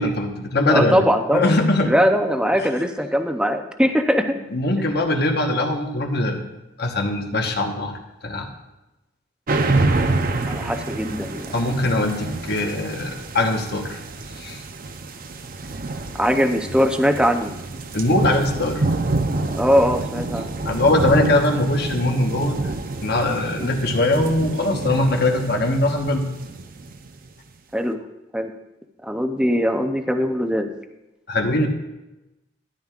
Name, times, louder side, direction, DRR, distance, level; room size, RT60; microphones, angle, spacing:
voice 1, 0.0-1.0 1.3-1.9 4.5-6.4 6.8-8.0 8.2-8.5 11.5-14.0 14.4-14.6 17.9-18.8 20.7-22.6 23.0-26.3 31.3-31.7, left 1 dB, 60° left, 3 dB, 1.2 m, -21 dB
voice 2, 0.7-1.5 1.8-4.4 4.8-4.9 10.2-11.5 16.2-17.5 19.5-20.5 23.6-23.7 27.7-28.0 28.3-28.5 29.0-30.7, equal, 5° right, 6 dB, 0.6 m, -21 dB
sound 1, 9.5-27.3, right 2 dB, 50° right, 0.6 m, -27 dB
13.0 x 10.5 x 2.5 m, 0.98 s
head